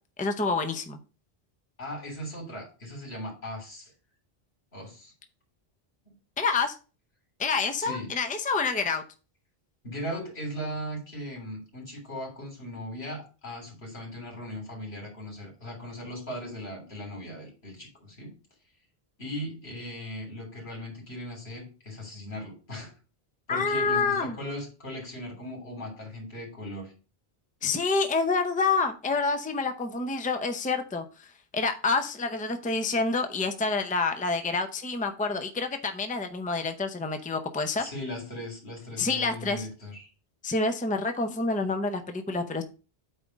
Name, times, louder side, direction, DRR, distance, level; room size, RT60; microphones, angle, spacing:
voice 1, 0.2-1.0 6.4-6.8 7.4-9.0 23.5-24.4 27.6-31.3 31.5-37.9 39.0-39.7 40.4-42.6, left 4 dB, 10° left, 7 dB, 0.6 m, -28 dB
voice 2, 1.8-3.9 4.7-5.1 6.1-6.2 7.7-8.1 9.8-18.3 19.2-22.9 23.5-26.9 37.8-40.1, equal, 85° left, 0 dB, 3.4 m, -38 dB
8.7 x 3.5 x 5.2 m, 0.34 s
omnidirectional pair, 1.0 m